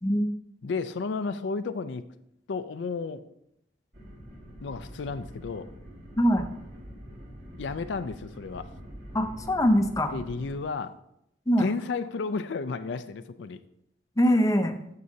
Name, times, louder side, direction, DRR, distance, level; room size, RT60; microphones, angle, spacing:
voice 1, 0.0-0.3 6.2-6.5 9.1-10.1 11.5-11.7 14.2-14.8, equal, 20° left, 6 dB, 0.6 m, -23 dB
voice 2, 0.6-2.0 2.5-3.2 4.6-5.7 7.6-8.7 10.1-10.9 11.6-13.6, left 4 dB, 80° left, 11 dB, 0.4 m, -32 dB
sound 1, 3.9-10.6, equal, 55° right, 2.1 m, -45 dB
9.4 x 7.0 x 2.8 m, 0.77 s
head